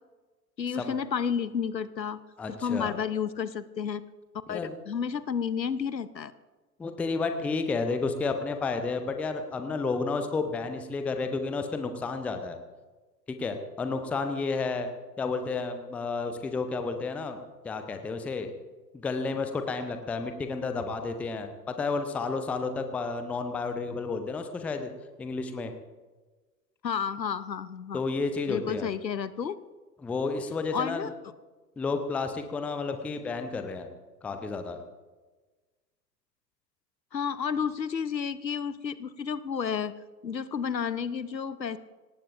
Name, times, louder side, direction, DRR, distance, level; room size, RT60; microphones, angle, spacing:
voice 1, 0.6-2.2 2.5-4.0 4.5-4.6 4.9-6.3 26.8-28.0 28.5-29.5 30.7-31.1 37.1-39.9 40.2-41.8, left 7 dB, 80° left, 16 dB, 0.9 m, -31 dB
voice 2, 2.4-2.9 4.5-4.7 6.8-12.6 13.3-14.9 15.2-17.4 17.6-18.5 18.9-24.9 25.2-25.7 27.9-28.9 30.0-31.1 31.8-33.9 34.2-34.8, left 4 dB, 5° left, 7 dB, 0.5 m, -31 dB
25.0 x 18.5 x 2.6 m, 1.3 s
figure-of-eight pair, 95°, 50 cm